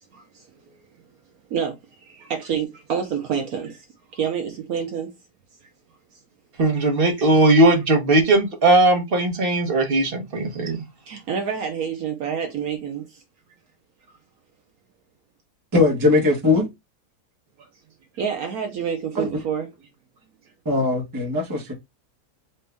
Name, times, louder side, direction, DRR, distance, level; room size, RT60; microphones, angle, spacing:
voice 1, 0.1-0.4 1.5-1.7 2.0-3.8 4.1-5.1 11.1-13.2 17.6-17.7 18.1-19.7, right 7 dB, 65° right, 1.1 m, -28 dB
voice 2, 6.6-10.8, right 2 dB, 40° right, 1.1 m, -18 dB
voice 3, 15.7-16.7 19.1-19.3 20.6-21.7, left 3 dB, 15° right, 1.1 m, -20 dB
4.4 x 2.6 x 3.4 m
omnidirectional pair, 1.8 m